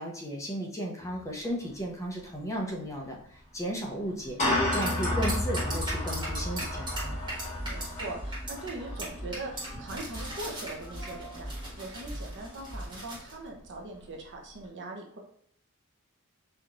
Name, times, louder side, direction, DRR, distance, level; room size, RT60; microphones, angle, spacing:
voice 1, 0.0-4.4 4.7-7.2, equal, 15° left, -1 dB, 0.6 m, -35 dB
sound 1, 1.0-1.2 1.4-1.6 2.9-3.0 4.1-13.2, left 1 dB, 35° left, 1.2 m, -34 dB
sound 2, 4.7-8.0 8.3-8.7 9.0-9.1 9.3-13.3, right 1 dB, 20° right, 1.6 m, -38 dB
sound 3, 5.9-12.9, equal, 75° left, 1.5 m, -42 dB
voice 2, 7.4-15.2, right 2 dB, 55° right, 1 dB, 0.7 m, -41 dB
4.4 x 2.8 x 2.5 m, 0.63 s
head